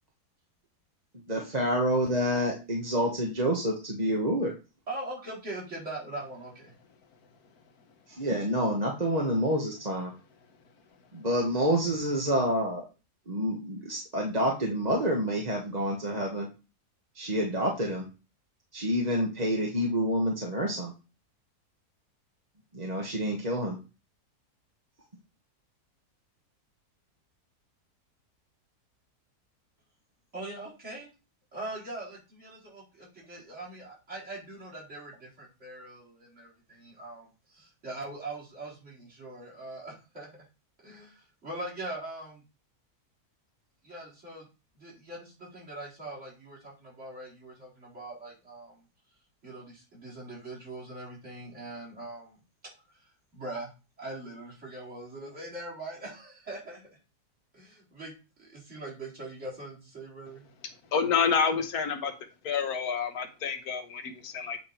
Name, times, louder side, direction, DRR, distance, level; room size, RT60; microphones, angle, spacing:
voice 1, 1.1-4.5 8.1-10.1 11.1-12.8 13.3-16.5 17.1-18.1 18.7-20.9 22.7-23.8, equal, 30° right, 0 dB, 1.3 m, -28 dB
voice 2, 4.9-6.7 30.3-31.1 31.5-40.4 40.8-42.4 43.8-44.5 44.8-48.8 49.4-52.4 52.9-53.0 53.3-53.7 54.0-56.9 57.5-58.1 58.4-60.4, right 2 dB, 50° right, -4 dB, 4.8 m, -42 dB
voice 3, 60.9-62.1 62.4-64.6, left 6 dB, 75° left, 7 dB, 1.5 m, -28 dB
8.4 x 5.2 x 4.4 m, 0.31 s
omnidirectional pair, 1.6 m